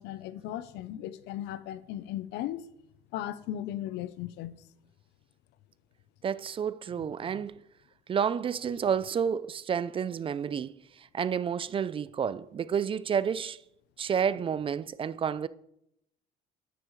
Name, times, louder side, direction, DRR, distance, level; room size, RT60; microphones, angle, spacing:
voice 1, 0.0-2.6 3.1-4.5 7.2-7.5, left 12 dB, 90° left, 0.6 m, -37 dB
voice 2, 6.2-7.6 8.1-13.6 14.0-15.5, right 7 dB, 30° right, 0.4 m, -30 dB
10.0 x 9.5 x 3.1 m
cardioid pair, 110°, 17 cm